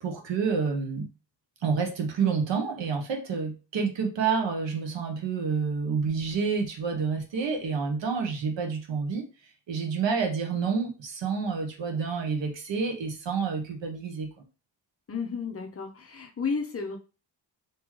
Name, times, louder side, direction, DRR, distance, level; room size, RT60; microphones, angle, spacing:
voice 1, 0.0-1.1 1.6-9.2 9.7-14.3, right 5 dB, 80° right, 3 dB, 1.1 m, -28 dB
voice 2, 15.1-17.0, left 5 dB, 35° left, 3 dB, 0.6 m, -32 dB
3.8 x 3.0 x 3.1 m, 0.33 s
wide cardioid pair, 145°, 43 cm